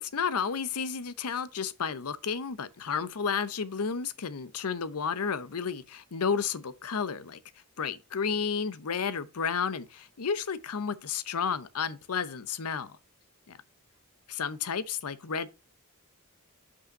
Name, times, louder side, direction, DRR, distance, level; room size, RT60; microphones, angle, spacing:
voice 1, 0.0-7.4 7.8-13.0 13.5-13.6 14.3-15.5, left 6 dB, 80° left, 0.7 m, -32 dB
5.7 x 5.1 x 5.8 m
head